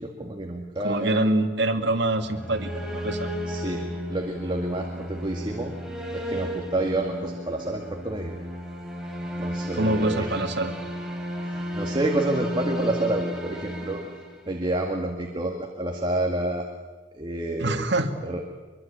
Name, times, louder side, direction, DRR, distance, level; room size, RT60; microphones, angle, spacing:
voice 1, 0.0-1.2 3.5-5.7 6.1-8.3 9.4-10.3 11.4-14.0 14.5-16.7 17.1-17.9 18.2-18.4, right 1 dB, 25° right, 2 dB, 2.0 m, -29 dB
voice 2, 0.8-3.3 9.7-10.7 17.6-18.1, right 2 dB, 65° right, 4 dB, 2.1 m, -25 dB
sound 1, 2.1-14.9, equal, 5° right, 3.8 m, -34 dB
23.5 x 23.0 x 8.7 m, 1.4 s
head